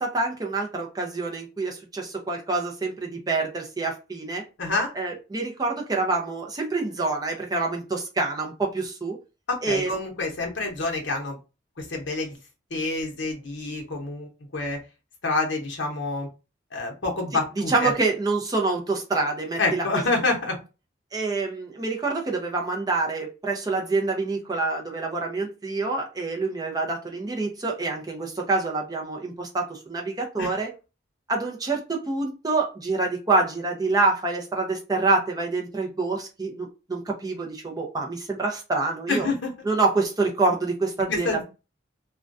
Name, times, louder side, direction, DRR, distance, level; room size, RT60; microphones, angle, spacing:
voice 1, 0.0-4.4 5.0-9.2 9.6-9.9 17.7-20.0 21.1-30.7 31.3-39.3 39.6-41.4, right 3 dB, 20° right, 1 dB, 0.5 m, -26 dB
voice 2, 4.6-4.9 9.5-11.4 11.8-12.4 12.7-14.8 15.2-16.3 16.7-17.9 19.6-20.6 30.4-30.5 39.1-39.5 41.1-41.4, left 3 dB, 60° left, 1 dB, 0.8 m, -27 dB
2.2 x 2.2 x 2.5 m, 0.30 s
head